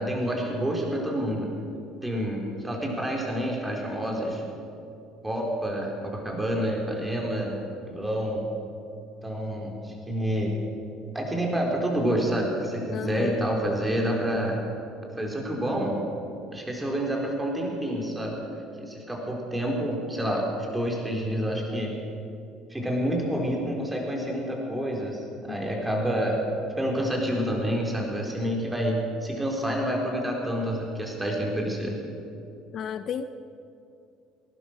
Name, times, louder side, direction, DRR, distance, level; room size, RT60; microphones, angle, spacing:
voice 1, 0.0-1.5 2.0-4.4 5.2-7.6 7.9-8.5 9.2-10.5 11.1-14.6 15.1-16.0 16.5-18.3 18.8-21.9 22.7-26.4 26.8-31.9, equal, 10° right, -1 dB, 4.3 m, -28 dB
voice 2, 12.9-13.4 25.5-25.6 32.7-33.2, left 8 dB, 50° left, 12 dB, 0.6 m, -32 dB
18.5 x 11.5 x 6.3 m, 2.6 s
hypercardioid pair, 65°, 0 cm